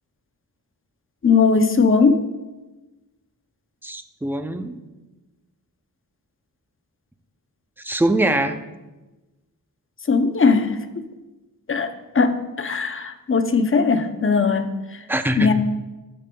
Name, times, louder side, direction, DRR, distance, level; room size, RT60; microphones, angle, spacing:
voice 1, 1.2-2.3 10.1-10.8 11.7-11.9 12.1-14.7 15.4-15.5, left 4 dB, 35° left, 7 dB, 0.6 m, -19 dB
voice 2, 3.8-4.8 7.8-8.6 15.1-15.5, right 1 dB, 5° right, 8 dB, 0.4 m, -22 dB
13.5 x 5.2 x 2.3 m, 1.1 s
wide cardioid pair, 85°, 36 cm